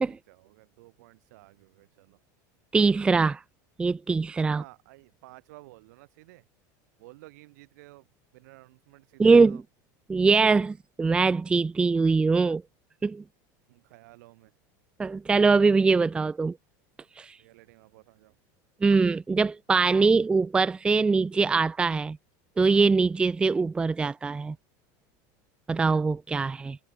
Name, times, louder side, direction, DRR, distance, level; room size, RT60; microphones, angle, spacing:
voice 1, 0.0-2.2 4.5-6.5 7.0-8.1 8.3-9.6 13.7-14.5 17.4-18.4 23.1-23.3, right 21 dB, 75° right, 5.9 m, -52 dB
voice 2, 2.7-3.4 3.8-4.6 9.2-9.6 10.1-12.6 13.0-13.2 15.0-16.6 17.2-17.4 18.8-22.2 22.6-24.6 25.7-26.8, right 4 dB, 10° right, 0.6 m, -22 dB
supercardioid pair, 155°, 10 cm